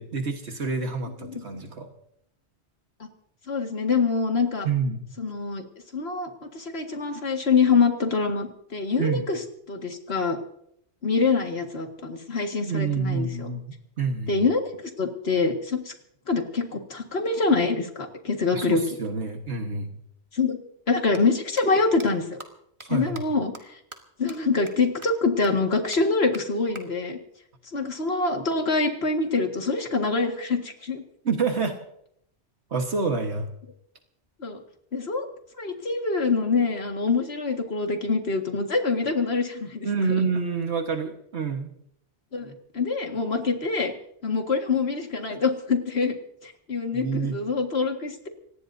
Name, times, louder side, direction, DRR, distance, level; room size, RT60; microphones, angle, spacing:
voice 1, 0.0-1.9 4.6-5.0 9.0-9.3 12.6-14.4 18.5-19.9 22.8-23.2 31.2-31.8 32.7-33.5 39.8-41.7 46.9-47.4, right 4 dB, 75° right, 4 dB, 1.7 m, -28 dB
voice 2, 3.5-4.7 5.2-5.6 5.9-9.4 9.7-10.4 11.0-13.5 14.3-15.9 16.3-18.8 20.3-20.6 20.9-22.4 22.9-23.5 24.2-27.2 27.7-31.0 34.4-34.6 34.9-35.3 35.6-39.9 42.3-43.9 44.2-46.1 46.4-48.3, left 4 dB, 65° left, 3 dB, 2.1 m, -25 dB
sound 1, 21.1-21.2 21.6-21.7 22.0-22.1 22.4-22.5 22.8-22.9 23.1-23.2 23.5-23.6 23.9-24.0 24.3-24.4 24.7-24.8 25.0-25.1 25.4-25.5 25.9-26.0 26.3-26.4 26.8-26.9 28.5-29.5, right 2 dB, 25° right, 1.9 m, -44 dB
25.0 x 18.5 x 2.7 m, 0.71 s
omnidirectional pair, 1.1 m